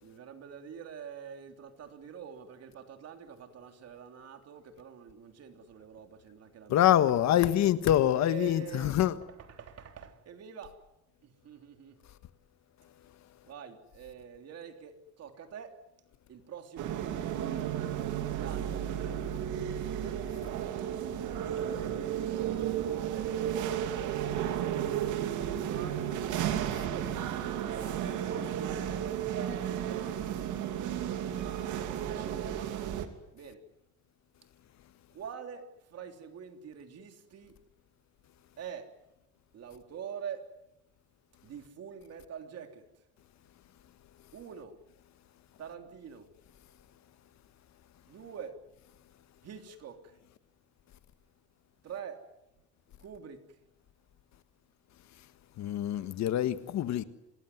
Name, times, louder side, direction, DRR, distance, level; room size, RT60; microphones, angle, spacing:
voice 1, 0.0-7.4 8.1-9.0 9.3-10.8 11.2-12.0 13.4-15.8 16.3-17.4 17.9-21.2 21.6-26.2 26.8-27.2 27.7-30.4 30.7-31.7 32.1-32.9 33.3-33.6 35.1-37.6 38.6-38.9 39.5-40.5 41.4-42.9 44.3-44.8 45.6-46.3 48.1-48.6 49.4-50.2 51.8-52.3 53.0-53.6, right 7 dB, 55° right, 3.4 m, -46 dB
voice 2, 6.7-9.1 26.7-26.9 55.6-57.0, left 12 dB, 65° left, 1.6 m, -25 dB
sound 1, 16.8-33.0, right 10 dB, 80° right, 3.0 m, -33 dB
26.5 x 19.5 x 9.6 m
cardioid pair, 125°, 30 cm